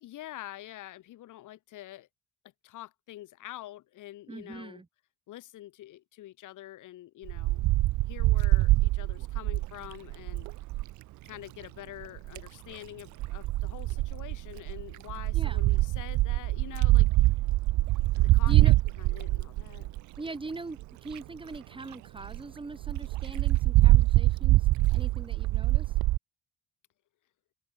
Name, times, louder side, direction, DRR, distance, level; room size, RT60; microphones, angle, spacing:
voice 1, 0.0-2.1 2.6-4.8 5.3-7.6 8.1-10.5 11.2-17.3 18.2-19.9, left 14 dB, 85° left, 2.7 m, -46 dB
voice 2, 4.3-4.9 15.3-15.6 18.4-18.7 20.2-25.9, right 3 dB, 15° right, 0.9 m, -41 dB
Wind, 7.3-10.9 12.0-12.5 13.2-20.2 20.8-20.9 21.1-21.2 21.5-21.6 21.9-22.0 22.2-22.4 22.8-26.2, right 18 dB, 75° right, 0.4 m, -24 dB
open air
cardioid pair, 90°, 30 cm